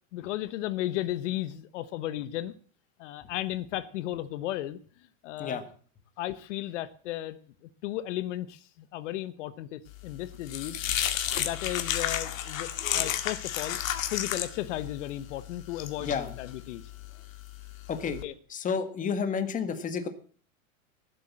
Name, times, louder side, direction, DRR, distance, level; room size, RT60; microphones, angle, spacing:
voice 1, 0.1-2.5 3.0-5.6 6.2-7.4 7.8-10.8 11.4-13.8 14.1-16.8 18.2-18.3, left 14 dB, 65° left, 13 dB, 1.0 m, -35 dB
sound 1, 10.0-18.2, left 11 dB, 85° left, 2.0 m, -33 dB
voice 2, 17.9-18.2 18.5-20.1, left 6 dB, 20° left, 9 dB, 1.6 m, -30 dB
16.5 x 8.0 x 7.5 m, 0.44 s
supercardioid pair, 145°, 39 cm